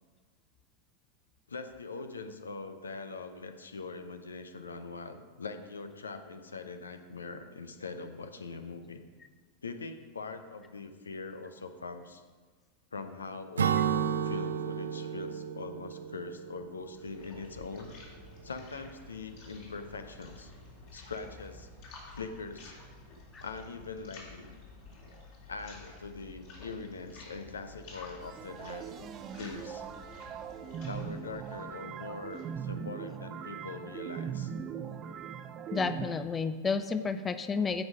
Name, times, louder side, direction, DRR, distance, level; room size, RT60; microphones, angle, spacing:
voice 1, 1.5-9.0 9.6-12.2 12.9-13.8 14.2-17.9 18.4-20.5 20.9-21.7 22.1-22.7 23.4-24.6 25.5-28.9 29.4-29.8 30.9-34.5, left 4 dB, 75° left, 9 dB, 0.8 m, -42 dB
Acoustic guitar / Strum, 13.6-17.2, right 8 dB, 70° right, 0.4 m, -32 dB
sound 1, 16.7-32.6, left 3 dB, 50° left, 3.1 m, -51 dB
sound 2, 28.2-36.1, right 8 dB, 30° right, 0.7 m, -40 dB
voice 2, 35.7-37.8, left 5 dB, 20° left, 11 dB, 0.5 m, -31 dB
15.0 x 5.5 x 5.0 m, 1.5 s
figure-of-eight pair, 90°, 0 cm